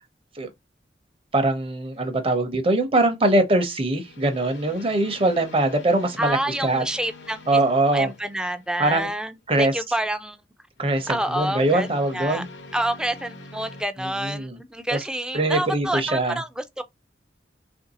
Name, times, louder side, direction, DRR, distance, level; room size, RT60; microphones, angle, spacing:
voice 1, 1.3-6.4 6.6-6.8 7.5-8.1 8.8-9.1 9.5-9.7 10.8-12.5 14.0-14.6 14.9-15.0 15.3-16.4, right 2 dB, 30° right, 0.7 m, -22 dB
sound 1, 1.9-2.3 3.9-9.0 10.8-13.8, left 2 dB, 85° left, 0.8 m, -44 dB
voice 2, 6.2-7.6 7.9-10.4 11.1-11.9 12.1-12.4 12.7-16.8, right 1 dB, 5° right, 0.4 m, -28 dB
3.2 x 2.6 x 4.0 m
head